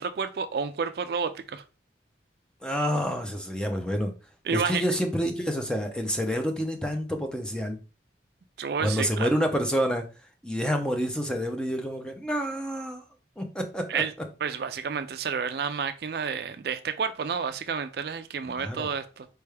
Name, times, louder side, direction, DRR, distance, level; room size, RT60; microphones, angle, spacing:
voice 1, 0.0-1.6 4.5-4.8 8.6-9.3 13.9-14.1 14.4-19.3, right 6 dB, 55° right, 0.4 m, -30 dB
voice 2, 2.6-4.1 4.5-7.8 8.8-10.0 10.4-13.0 13.4-14.0 18.5-18.9, equal, 5° left, 0.5 m, -28 dB
4.5 x 3.3 x 3.3 m
head